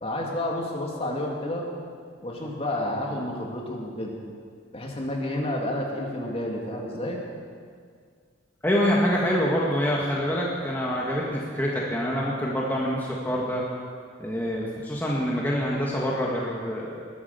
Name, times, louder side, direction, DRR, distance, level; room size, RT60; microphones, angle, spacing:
voice 1, 0.0-1.7 2.2-4.1 4.7-7.2, left 1 dB, 30° left, -1 dB, 2.5 m, -30 dB
voice 2, 8.6-13.6 14.2-17.0, equal, 10° left, -4 dB, 1.7 m, -26 dB
20.5 x 9.9 x 6.8 m, 2.1 s
head